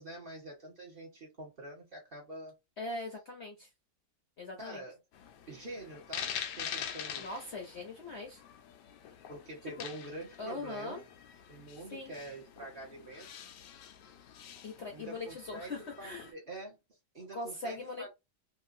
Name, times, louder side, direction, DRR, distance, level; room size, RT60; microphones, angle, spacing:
voice 1, 0.0-2.5 4.6-5.0 5.5-7.3 9.3-11.0 11.5-13.3 14.9-16.8 17.1-18.1, right 1 dB, 35° right, 1.3 m, -46 dB
voice 2, 2.8-3.7 4.4-4.8 7.2-8.4 10.4-11.0 11.9-12.2 14.6-16.3 17.3-18.1, left 2 dB, 50° left, 0.9 m, -41 dB
sound 1, 5.1-16.3, left 8 dB, 85° left, 1.2 m, -45 dB
3.0 x 2.5 x 2.6 m
omnidirectional pair, 1.8 m